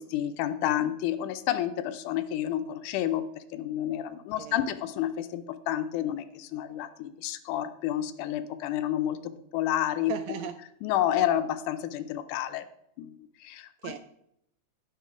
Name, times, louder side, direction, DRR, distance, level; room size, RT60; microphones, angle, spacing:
voice 1, 0.0-10.1 10.8-12.7 13.0-13.9, left 11 dB, 90° left, 9 dB, 2.2 m, -30 dB
voice 2, 4.1-4.7 10.1-10.6 13.8-14.0, right 10 dB, 80° right, 10 dB, 1.6 m, -38 dB
10.5 x 6.6 x 4.9 m, 0.75 s
omnidirectional pair, 3.5 m